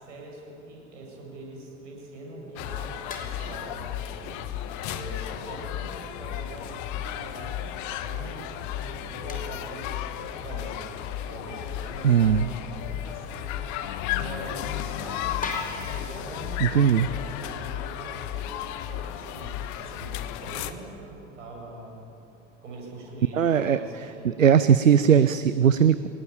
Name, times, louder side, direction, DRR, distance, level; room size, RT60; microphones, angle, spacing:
voice 1, 0.0-4.4 4.8-8.5 8.8-10.8 11.3-13.7 14.1-15.4 15.7-18.6 18.8-22.1 22.6-24.4, right 2 dB, 70° right, -1 dB, 7.8 m, -43 dB
sound 1, 2.6-20.7, left 11 dB, 50° left, 1.5 m, -34 dB
sound 2, 3.1-5.4 5.9-6.0 6.4-6.5 7.0-7.1 7.5-7.6 8.6-8.7 9.3-10.6 11.5-11.6 12.0-12.1 12.6-12.9 13.7-13.9 14.2-14.3 14.8-14.9 15.4-18.8, left 3 dB, 20° left, 4.8 m, -42 dB
voice 2, 12.0-12.5 16.6-17.1 23.3-26.1, right 8 dB, 85° right, 14 dB, 0.7 m, -20 dB
sound 3, 13.8-18.4, left 11 dB, 65° left, 1.1 m, -42 dB
24.0 x 19.0 x 8.8 m, 2.8 s
figure-of-eight pair, 75°, 38 cm